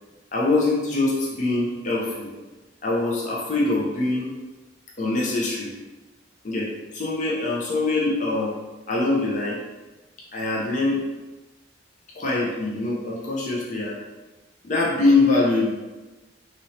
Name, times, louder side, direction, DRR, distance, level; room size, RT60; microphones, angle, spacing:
voice 1, 0.3-2.3 2.8-4.3 5.0-5.7 6.4-8.5 8.9-9.6 10.3-11.0 12.1-14.0 14.6-15.7, left 2 dB, 45° left, -4 dB, 0.5 m, -23 dB
3.0 x 2.9 x 2.7 m, 1.2 s
head